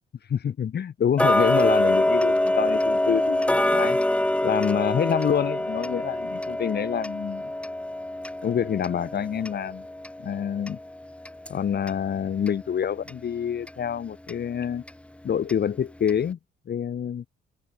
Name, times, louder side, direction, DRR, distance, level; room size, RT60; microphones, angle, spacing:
voice 1, 0.3-4.0 4.4-7.5 8.4-9.9 10.2-10.8 11.5-14.8 15.2-16.4 16.6-17.2, left 8 dB, 55° left, 4.9 m, -27 dB
Tick-tock, 1.2-12.0 12.4-12.5 13.1-13.2 13.7-13.8 14.3-14.4 14.9-15.0 15.5-15.6 16.1-16.2, left 1 dB, 5° left, 1.0 m, -25 dB
cardioid pair, 90°, 20 cm